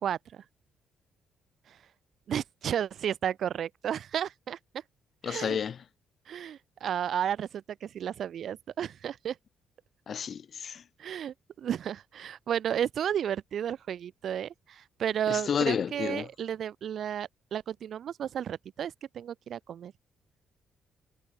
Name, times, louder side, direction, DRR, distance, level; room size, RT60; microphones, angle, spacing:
voice 1, 0.0-0.4 1.7-1.8 2.3-4.6 5.2-5.6 6.3-9.4 11.0-19.9, right 9 dB, 65° right, 2.5 m, -33 dB
voice 2, 5.2-5.8 10.1-10.8 15.3-16.3, left 7 dB, 55° left, 4.2 m, -30 dB
cardioid pair, 90°, 0 cm